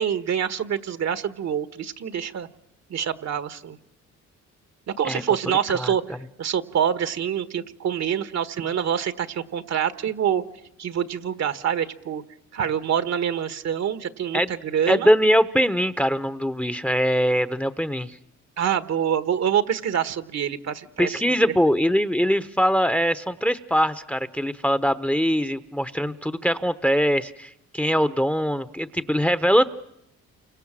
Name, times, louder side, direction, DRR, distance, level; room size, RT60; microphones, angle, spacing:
voice 1, 0.0-2.5 2.9-3.8 4.9-6.0 6.4-10.4 10.8-12.2 12.5-15.1 18.6-21.2, right 8 dB, 60° right, 11 dB, 1.5 m, -26 dB
voice 2, 14.9-18.2 21.0-29.8, equal, 5° left, 12 dB, 1.0 m, -22 dB
29.0 x 24.5 x 7.6 m, 0.78 s
cardioid pair, 90°, 30 cm